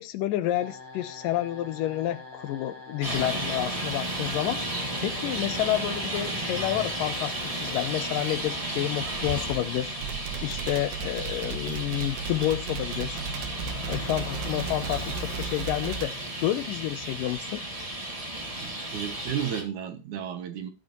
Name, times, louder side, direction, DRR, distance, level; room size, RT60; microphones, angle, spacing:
voice 1, 0.0-4.6 5.0-7.3 7.6-10.0 10.4-13.2 13.9-16.1 16.4-17.6, left 14 dB, 80° left, 13 dB, 2.1 m, -29 dB
sound 1, 0.5-9.4, left 3 dB, 40° left, 3.0 m, -46 dB
Traffic noise roadway noise, 3.0-19.6, right 1 dB, 45° right, 0.4 m, -33 dB
sound 2, 10.0-16.1, right 6 dB, 85° right, 3.0 m, -35 dB
voice 2, 18.6-20.7, right 9 dB, 65° right, 8 dB, 2.1 m, -34 dB
16.0 x 6.9 x 3.0 m, 0.33 s
omnidirectional pair, 4.3 m